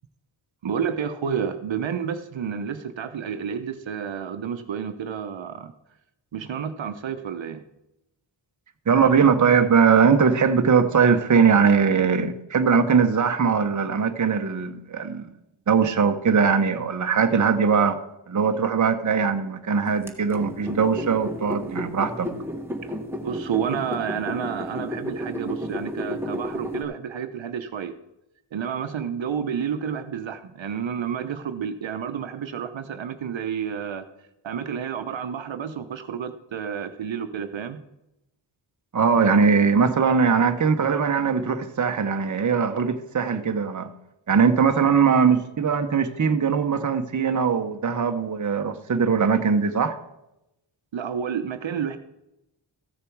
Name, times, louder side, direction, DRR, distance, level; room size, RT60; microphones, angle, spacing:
voice 1, 0.6-5.7 6.3-7.6 22.8-23.0 23.2-28.0 28.5-34.1 34.4-37.8 50.9-52.0, right 7 dB, 70° right, 0.8 m, -30 dB
voice 2, 8.9-15.3 15.7-18.0 18.3-22.3 38.9-43.9 44.3-50.0, right 6 dB, 40° right, 0.9 m, -20 dB
sound 1, 20.1-26.8, equal, 5° right, 1.2 m, -32 dB
14.5 x 6.7 x 4.7 m
wide cardioid pair, 105°, 48 cm